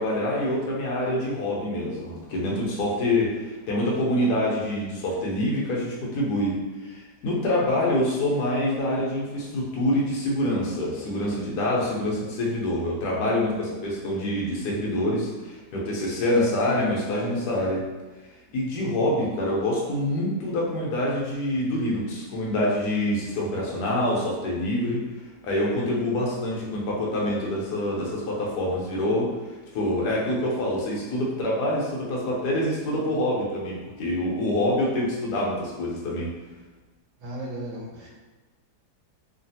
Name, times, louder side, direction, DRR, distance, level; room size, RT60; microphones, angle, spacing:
voice 1, 0.0-6.6 6.8-17.8 18.5-25.0 25.4-29.3 29.7-36.3, left 1 dB, 65° left, -4 dB, 1.2 m, -26 dB
voice 2, 37.2-38.2, right 1 dB, 85° right, -2 dB, 1.4 m, -35 dB
3.2 x 2.4 x 2.7 m, 1.2 s
omnidirectional pair, 2.1 m